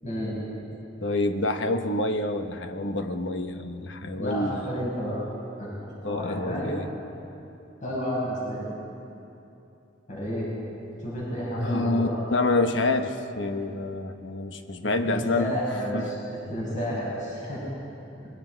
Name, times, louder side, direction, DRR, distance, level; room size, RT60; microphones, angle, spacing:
voice 1, 0.0-0.4 4.1-5.2 5.6-6.7 7.8-8.7 10.1-10.5 11.0-12.4 14.8-16.1 16.5-17.6, equal, 40° left, -6 dB, 5.8 m, -31 dB
voice 2, 1.0-4.7 6.0-6.9 11.6-15.6 15.9-16.1, left 2 dB, 70° left, 7 dB, 1.2 m, -27 dB
25.5 x 22.0 x 4.7 m, 2.9 s
head